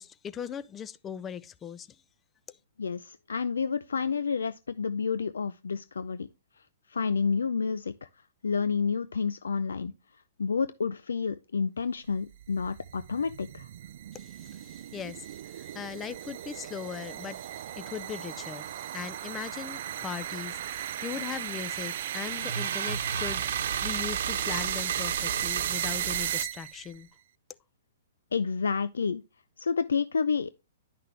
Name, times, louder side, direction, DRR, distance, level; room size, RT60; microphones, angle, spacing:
voice 1, 0.0-2.0 2.5-2.6 14.1-27.1, left 8 dB, 20° left, 0.4 m, -39 dB
voice 2, 2.8-6.3 6.9-8.1 8.4-9.9 10.4-13.7 28.3-29.2 29.6-30.5, left 5 dB, 90° left, 0.4 m, -29 dB
sound 1, 12.1-26.9, right 11 dB, 60° right, 0.3 m, -35 dB
sound 2, 21.5-21.8 22.3-26.4, right 7 dB, 75° right, 1.1 m, -34 dB
10.0 x 5.9 x 3.2 m
hypercardioid pair, 135°, 0 cm